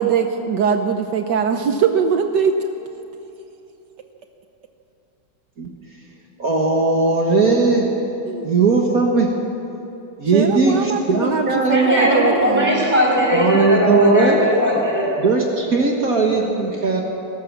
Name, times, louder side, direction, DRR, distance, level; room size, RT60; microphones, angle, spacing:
voice 1, 0.0-2.5 8.3-8.5 10.3-12.9, right 7 dB, 75° right, 6 dB, 1.5 m, -21 dB
voice 2, 6.4-7.9 8.4-9.3 10.2-12.3 13.3-14.4 15.2-17.0, right 3 dB, 55° right, 0 dB, 2.0 m, -18 dB
voice 3, 11.7-15.2, equal, 10° left, -4 dB, 6.1 m, -19 dB
20.0 x 18.0 x 7.4 m, 3.0 s
omnidirectional pair, 1.9 m